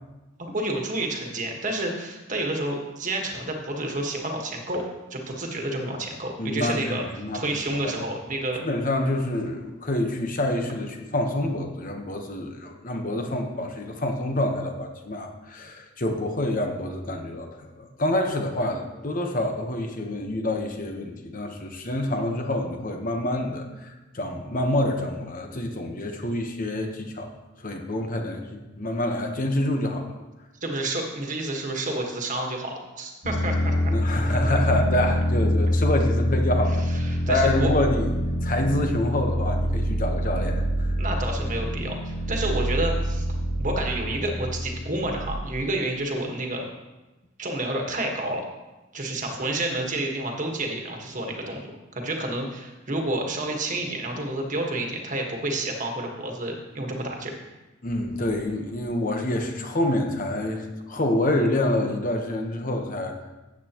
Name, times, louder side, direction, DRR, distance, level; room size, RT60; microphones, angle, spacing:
voice 1, 0.4-4.8 5.1-7.0 7.3-8.6 30.6-33.9 36.9-37.7 41.0-43.2 43.6-46.6 47.4-48.4 48.9-51.7 51.9-57.3, right 1 dB, 40° right, 2 dB, 1.6 m, -29 dB
voice 2, 6.4-7.4 7.8-7.9 8.6-27.3 27.6-30.1 33.9-36.8 37.3-38.1 38.4-40.9 57.8-63.1, left 1 dB, 45° left, 3 dB, 1.2 m, -27 dB
sound 1, 33.2-45.3, equal, 85° left, 2.5 m, -25 dB
13.5 x 8.5 x 3.0 m, 1.1 s
head